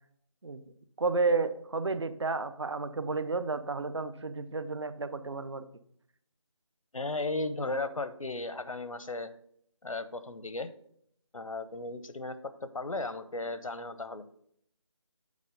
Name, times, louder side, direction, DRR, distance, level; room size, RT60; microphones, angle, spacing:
voice 1, 1.0-5.6, right 3 dB, 55° right, 13 dB, 0.7 m, -31 dB
voice 2, 6.9-9.3 9.8-10.7 11.3-14.3, left 2 dB, 85° left, 12 dB, 0.8 m, -35 dB
8.4 x 4.2 x 5.1 m, 0.68 s
figure-of-eight pair, 160°, 17 cm